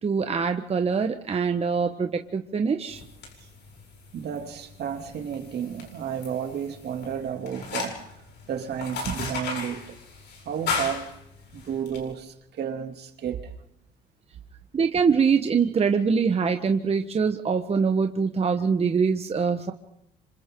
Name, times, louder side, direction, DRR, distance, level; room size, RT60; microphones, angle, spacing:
voice 1, 0.0-3.0 14.7-19.7, right 5 dB, 30° right, 1.3 m, -24 dB
sound 1, 2.9-12.0, left 5 dB, 65° left, 7.8 m, -36 dB
voice 2, 4.1-10.0 10.4-11.1 11.5-13.5, right 8 dB, 60° right, 2.8 m, -32 dB
27.0 x 26.5 x 3.8 m
cardioid pair, 90°, 19 cm